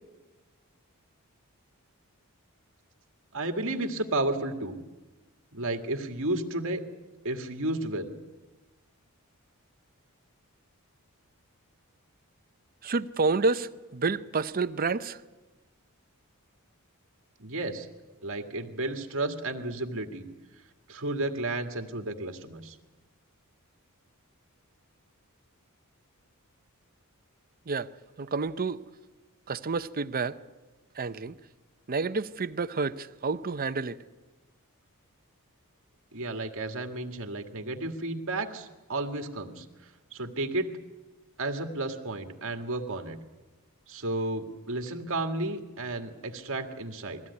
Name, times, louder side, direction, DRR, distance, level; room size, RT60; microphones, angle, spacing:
voice 1, 3.3-4.8 5.5-6.8 7.2-8.1 17.4-17.9 18.2-20.3 20.9-22.8 36.1-40.7 41.4-43.2 43.9-47.2, right 2 dB, 65° right, 2.0 m, -32 dB
voice 2, 12.8-15.2 27.7-27.9 28.2-28.8 29.5-30.4 31.0-31.3 31.9-34.0, right 4 dB, 40° right, 0.6 m, -29 dB
22.0 x 16.0 x 9.6 m
head